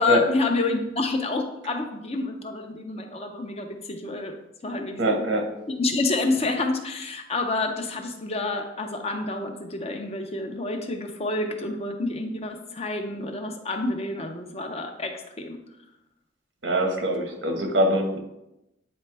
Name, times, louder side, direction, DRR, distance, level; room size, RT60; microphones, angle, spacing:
voice 1, 0.0-4.3 4.6-5.2 5.8-15.6, left 2 dB, 35° left, 4 dB, 0.7 m, -28 dB
voice 2, 5.0-5.5 16.6-18.2, equal, 90° right, 3 dB, 1.2 m, -23 dB
8.6 x 4.2 x 3.4 m, 0.88 s
head